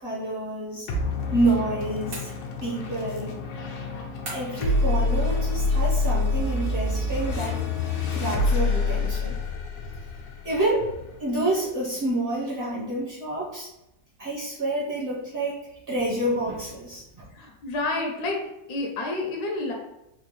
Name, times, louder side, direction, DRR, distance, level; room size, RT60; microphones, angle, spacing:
voice 1, 0.0-0.9 1.3-2.3 2.6-3.4 4.3-7.6 8.1-9.4 10.4-10.9 11.2-13.7 14.2-17.3, right 1 dB, 40° right, -7 dB, 1.0 m, -28 dB
sound 1, 0.9-11.7, left 3 dB, 90° left, 1.4 m, -27 dB
sound 2, 2.1-2.8 4.3-4.8, right 2 dB, 80° right, 1.9 m, -39 dB
voice 2, 17.4-18.4 18.7-19.7, left 2 dB, 70° left, 1 dB, 1.1 m, -29 dB
4.1 x 2.4 x 3.0 m, 0.89 s
omnidirectional pair, 1.9 m